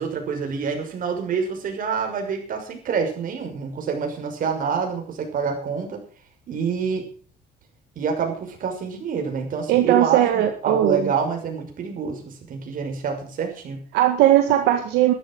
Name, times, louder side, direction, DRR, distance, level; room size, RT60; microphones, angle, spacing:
voice 1, 0.0-6.0 6.5-7.1 8.0-13.8, right 6 dB, 55° right, 4 dB, 6.1 m, -27 dB
voice 2, 9.7-11.1 13.9-15.1, right 12 dB, 85° right, 5 dB, 1.9 m, -18 dB
13.0 x 12.5 x 6.3 m, 0.42 s
cardioid pair, 110°, 17 cm